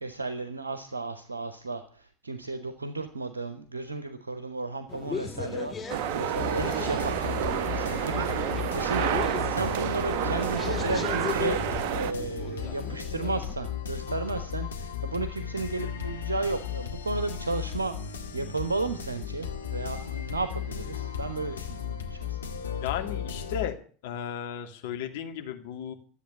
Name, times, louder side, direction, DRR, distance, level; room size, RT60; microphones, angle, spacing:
voice 1, 0.0-7.1 7.7-9.1 9.4-11.6 11.9-22.5, right 3 dB, 85° right, 9 dB, 1.1 m, -34 dB
sound 1, 4.9-13.5, left 6 dB, 25° left, 1.9 m, -38 dB
sound 2, 5.9-12.1, right 10 dB, 60° right, 1.1 m, -29 dB
sound 3, 6.4-23.7, left 8 dB, 80° left, 1.8 m, -35 dB
voice 2, 22.8-23.8 24.0-25.9, left 9 dB, 60° left, 5 dB, 2.5 m, -34 dB
13.5 x 8.4 x 9.9 m, 0.43 s
figure-of-eight pair, 80°, 0 cm